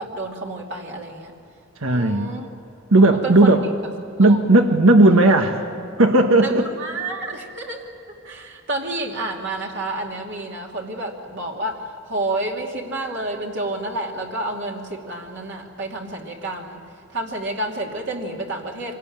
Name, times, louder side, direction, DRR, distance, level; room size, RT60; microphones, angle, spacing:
voice 1, 0.0-1.3 1.9-2.5 3.2-3.6 4.2-4.4 6.4-7.9 8.2-16.8 17.1-18.9, right 2 dB, 60° right, -1 dB, 2.7 m, -29 dB
voice 2, 1.8-2.3 2.9-3.6 4.2-5.7 6.0-6.7, right 2 dB, 85° right, 5 dB, 1.4 m, -15 dB
26.0 x 19.0 x 8.9 m, 2.8 s
head